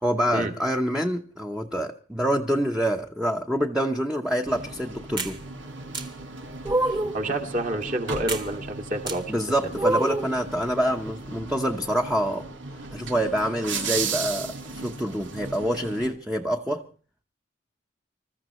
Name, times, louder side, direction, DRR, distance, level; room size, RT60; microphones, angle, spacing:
voice 1, 0.0-5.4 9.3-12.5 12.9-16.8, equal, 5° right, 0.9 m, -26 dB
sound 1, 4.4-16.1, right 4 dB, 75° right, 2.1 m, -36 dB
sound 2, 5.2-5.4 5.9-6.1 6.6-7.2 8.3-8.5 9.1-9.2 9.8-10.3, right 2 dB, 25° right, 1.5 m, -25 dB
voice 2, 7.0-9.3 9.6-10.0, right 1 dB, 45° right, 2.3 m, -29 dB
27.0 x 14.0 x 3.1 m
head